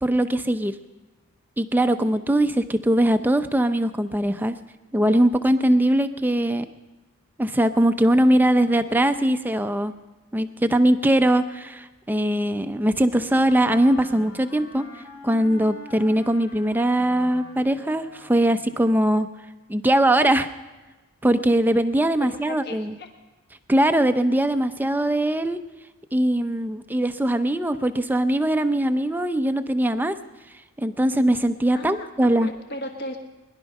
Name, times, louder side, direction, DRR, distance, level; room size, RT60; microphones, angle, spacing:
voice 1, 0.0-0.7 1.6-4.5 4.9-6.7 7.4-9.9 10.3-14.8 15.2-19.3 19.7-20.5 21.2-22.9 23.7-25.6 26.1-30.2 30.8-32.5, right 1 dB, 10° right, 9 dB, 0.5 m, -21 dB
Wind instrument woodwind instrument, 13.1-18.8, left 2 dB, 80° left, 2.3 m, -44 dB
voice 2, 22.2-23.1 31.7-33.2, equal, 50° left, 3 dB, 1.4 m, -36 dB
21.0 x 11.5 x 5.4 m, 1.2 s
head